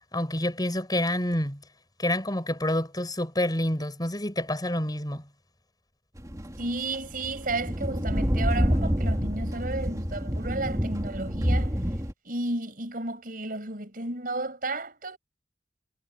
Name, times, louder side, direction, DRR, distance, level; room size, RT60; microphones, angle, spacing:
voice 1, 0.1-1.6 2.0-5.2, left 1 dB, 25° left, 7.1 m, -28 dB
sound 1, 6.2-12.1, equal, 20° right, 3.1 m, -28 dB
voice 2, 6.6-11.7 12.2-15.2, right 2 dB, 55° right, 6.5 m, -33 dB
head